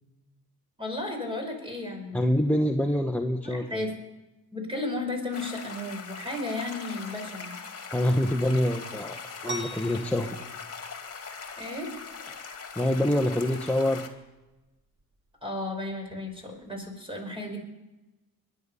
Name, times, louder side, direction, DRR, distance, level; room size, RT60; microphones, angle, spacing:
voice 1, 0.8-2.2 3.4-3.9 4.5-7.5 11.6-11.9 15.4-17.6, left 2 dB, 15° right, 2 dB, 5.2 m, -34 dB
voice 2, 2.1-3.9 7.9-9.2 9.4-10.3 12.7-14.0, left 1 dB, 5° left, 2 dB, 1.0 m, -25 dB
sound 1, 5.3-14.1, left 5 dB, 40° left, 2.1 m, -41 dB
sound 2, 9.4-16.8, right 1 dB, 30° right, 1.8 m, -45 dB
21.5 x 10.0 x 5.5 m, 1.1 s
cardioid pair, 75°, 38 cm